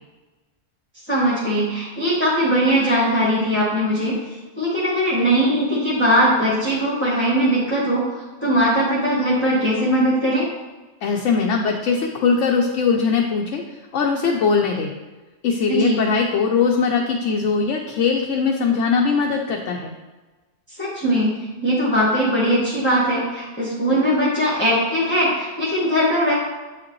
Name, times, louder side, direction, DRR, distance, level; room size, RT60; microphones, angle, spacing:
voice 1, 1.1-4.1 4.6-8.0 8.4-10.5 15.7-16.0 20.8-21.3 21.6-26.3, equal, 10° left, -6 dB, 1.1 m, -20 dB
voice 2, 11.0-13.6 13.9-14.9 15.4-19.9, left 5 dB, 70° left, 0 dB, 0.9 m, -20 dB
8.3 x 5.0 x 3.1 m, 1.2 s
omnidirectional pair, 1.3 m